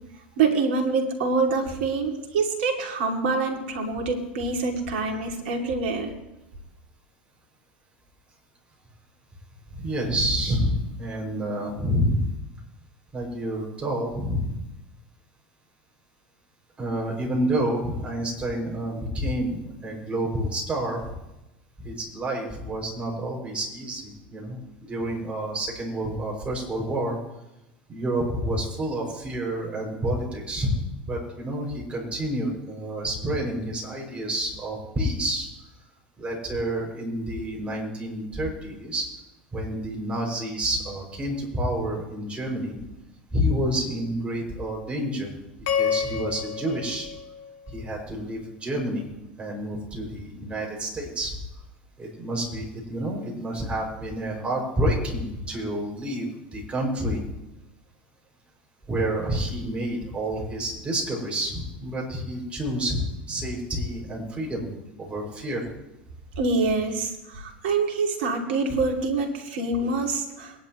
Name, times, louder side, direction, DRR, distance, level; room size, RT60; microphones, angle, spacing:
voice 1, 0.4-6.1 66.4-70.5, right 4 dB, 75° right, 2 dB, 2.6 m, -25 dB
voice 2, 9.7-12.3 13.1-14.6 16.8-21.0 21.8-27.2 27.9-30.8 31.1-35.5 36.2-39.1 39.5-42.8 43.3-45.3 45.7-47.1 47.7-49.1 49.4-51.4 52.0-57.3 58.9-64.7 65.0-65.6, right 1 dB, 20° right, -1 dB, 6.1 m, -29 dB
sound 1, 45.7-48.0, left 8 dB, 65° left, 1.3 m, -29 dB
23.0 x 10.5 x 3.1 m, 0.95 s
hypercardioid pair, 85°, 6 cm